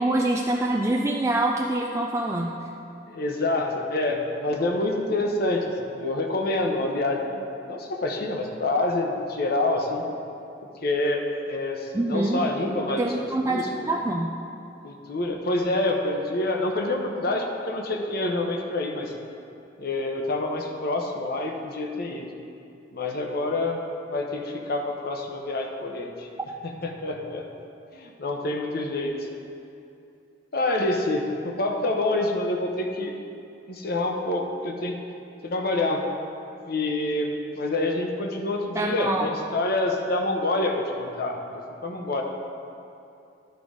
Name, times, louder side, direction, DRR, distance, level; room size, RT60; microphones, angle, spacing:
voice 1, 0.0-2.5 11.9-12.4 12.9-14.3 38.7-39.3, right 2 dB, 15° right, -1 dB, 0.3 m, -25 dB
voice 2, 3.1-10.0 10.8-13.2 13.5-13.7 14.8-19.1 19.8-22.3 22.9-23.8 24.1-26.3 26.8-27.4 27.9-29.3 30.5-33.1 33.7-34.9 35.4-36.0 36.6-41.4 41.8-42.2, left 2 dB, 60° left, 2 dB, 0.8 m, -27 dB
11.5 x 3.9 x 4.9 m, 2.6 s
head